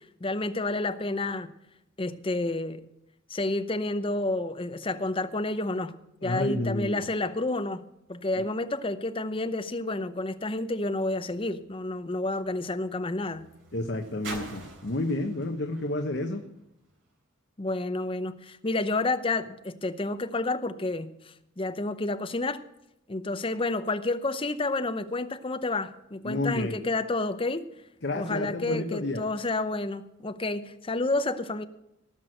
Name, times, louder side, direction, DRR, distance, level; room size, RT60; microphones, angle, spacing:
voice 1, 0.2-1.5 2.0-2.8 3.3-5.9 6.2-7.8 8.1-13.5 17.6-22.6 23.1-27.7 28.1-31.6, left 2 dB, 25° left, 0.7 m, -30 dB
voice 2, 6.2-7.0 8.4-8.5 13.7-16.4 26.2-26.8 28.0-29.3, left 2 dB, 60° left, 1.0 m, -30 dB
sound 1, 11.0-17.2 18.0-18.1, right 2 dB, 65° right, 3.4 m, -47 dB
17.5 x 6.1 x 7.7 m
head